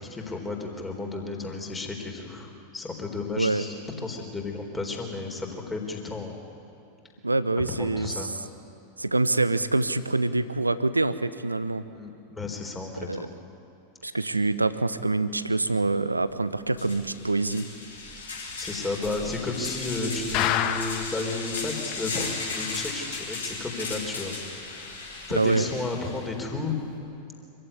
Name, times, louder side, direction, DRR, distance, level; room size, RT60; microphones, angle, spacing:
voice 1, 0.0-3.8 4.0-6.3 7.8-8.3 11.9-13.4 18.3-24.3 24.7-26.7, left 3 dB, 10° left, 2 dB, 3.9 m, -33 dB
voice 2, 3.4-3.7 7.2-8.3 9.0-11.8 13.0-13.3 14.0-17.7 25.4-25.7, right 2 dB, 85° right, 15 dB, 0.8 m, -25 dB
sound 1, 16.3-16.4 16.7-26.3, left 3 dB, 70° left, 5.1 m, -36 dB
sound 2, 20.3-21.2 21.6-21.7 21.9-22.0 22.5-22.6, left 11 dB, 40° left, 1.2 m, -26 dB
25.5 x 15.5 x 9.8 m, 2.8 s
figure-of-eight pair, 90°, 0 cm